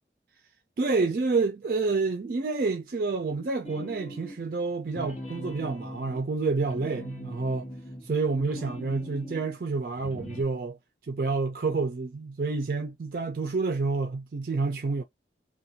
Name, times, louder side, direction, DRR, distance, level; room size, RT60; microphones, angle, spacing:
voice 1, 0.8-7.7 8.0-15.0, right 4 dB, 55° right, 0.4 m, -29 dB
sound 1, 3.6-4.5 4.9-9.5 9.9-10.4, equal, 40° left, 0.9 m, -41 dB
2.5 x 2.2 x 2.7 m
head